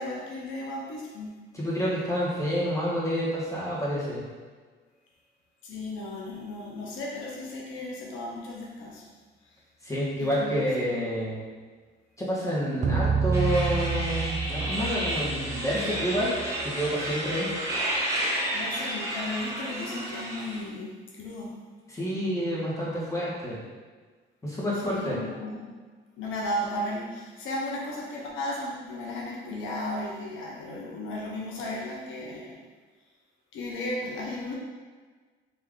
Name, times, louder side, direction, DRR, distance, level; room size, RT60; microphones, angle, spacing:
voice 1, 0.0-1.3 5.6-9.0 10.2-10.6 18.5-21.5 24.8-25.7 26.2-32.6 33.5-34.5, left 1 dB, 85° left, -2 dB, 0.7 m, -35 dB
voice 2, 1.5-4.2 9.8-11.4 12.2-16.3 16.6-17.5 21.9-23.6 24.4-25.2, equal, 15° left, -7 dB, 1.4 m, -28 dB
sound 1, 12.8-17.3, right 5 dB, 40° right, 0.6 m, -29 dB
sound 2, 13.3-20.6, right 1 dB, 15° right, 1.0 m, -31 dB
3.4 x 2.8 x 3.6 m, 1.5 s
cardioid pair, 90°, 20 cm